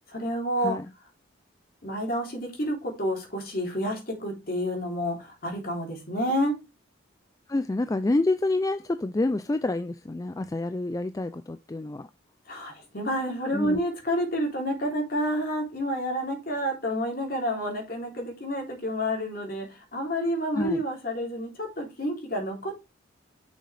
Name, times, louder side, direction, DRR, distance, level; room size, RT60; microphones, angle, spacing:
voice 1, 0.1-0.8 1.8-6.5 12.5-22.8, equal, 50° left, 3.3 m, -29 dB
voice 2, 7.5-12.1 13.5-13.8 20.6-20.8, left 2 dB, 15° left, 0.3 m, -28 dB
6.5 x 6.4 x 3.3 m
head